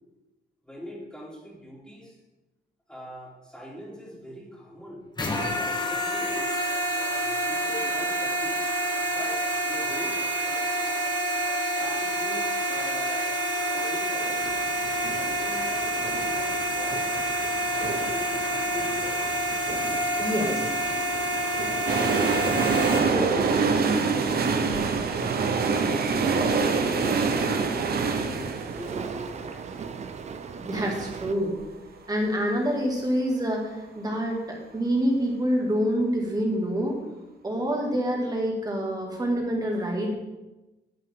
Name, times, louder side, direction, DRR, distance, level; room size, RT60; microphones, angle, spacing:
voice 1, 0.6-2.2 2.9-5.0 5.6-6.5 6.9-8.6 9.1-11.0 11.8-13.3 13.7-14.6 15.2-17.1 17.7-19.2 19.7-22.1 23.0-24.4 25.5-29.9, equal, 5° left, -4 dB, 2.8 m, -41 dB
sound 1, 5.2-23.0, right 1 dB, 20° left, 1.4 m, -28 dB
sound 2, 14.2-31.3, right 6 dB, 35° right, 0.5 m, -38 dB
voice 2, 20.2-20.7 30.6-31.6 32.1-37.0 37.4-40.1, equal, 20° right, -1 dB, 2.2 m, -26 dB
sound 3, 21.9-31.7 32.0-32.1, right 4 dB, 55° right, 1.0 m, -25 dB
10.5 x 8.8 x 3.8 m, 1.1 s
wide cardioid pair, 145°, 19 cm